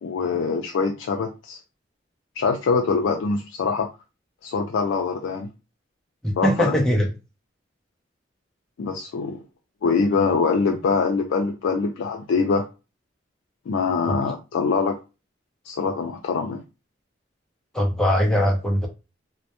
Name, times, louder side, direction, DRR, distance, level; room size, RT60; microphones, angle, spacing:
voice 1, 0.0-1.6 2.4-3.9 4.4-5.5 6.4-6.7 8.8-9.4 9.8-12.6 13.7-15.0 15.6-16.6, left 4 dB, 85° left, 0.3 m, -23 dB
voice 2, 6.2-7.1 14.1-14.2 17.7-18.9, equal, 5° left, 0.4 m, -21 dB
2.1 x 2.0 x 2.8 m
head